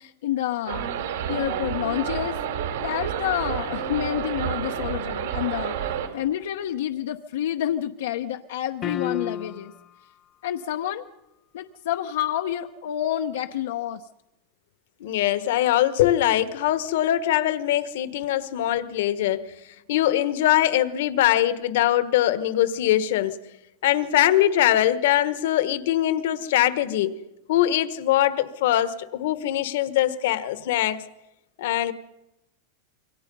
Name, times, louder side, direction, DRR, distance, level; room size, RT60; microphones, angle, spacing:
voice 1, 0.0-2.4 2.8-5.7 6.1-9.7 10.4-11.1 11.5-14.1, left 11 dB, 80° left, 0.9 m, -29 dB
sound 1, 0.7-6.1, right 9 dB, 85° right, 4.1 m, -29 dB
sound 2, 8.8-9.9, left 8 dB, 20° left, 0.8 m, -31 dB
voice 2, 15.0-19.5 19.9-23.4 23.8-27.1 27.5-31.0 31.6-31.9, left 13 dB, 65° left, 1.3 m, -22 dB
27.0 x 23.5 x 5.5 m
supercardioid pair, 165°, 0 cm